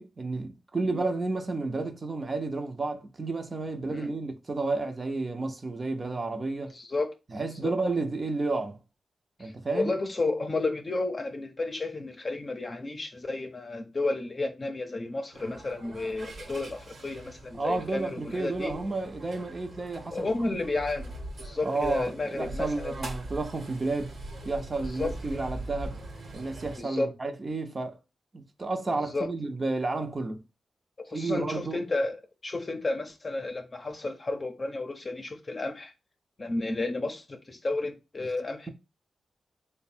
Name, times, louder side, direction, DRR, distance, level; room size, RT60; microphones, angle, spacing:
voice 1, 0.0-6.7 7.3-8.8 9.4-9.9 17.5-20.6 21.6-24.1 24.4-26.0 26.3-28.0 28.3-30.4 31.1-31.8, right 3 dB, 40° right, 0.6 m, -31 dB
voice 2, 6.7-7.7 9.4-18.8 20.1-23.0 25.0-25.4 26.8-27.1 29.1-29.3 31.0-35.9 36.4-38.7, left 2 dB, 40° left, 0.6 m, -32 dB
sound 1, 15.3-26.8, right 2 dB, 70° right, 1.1 m, -42 dB
3.2 x 2.2 x 4.3 m
cardioid pair, 60°, 0 cm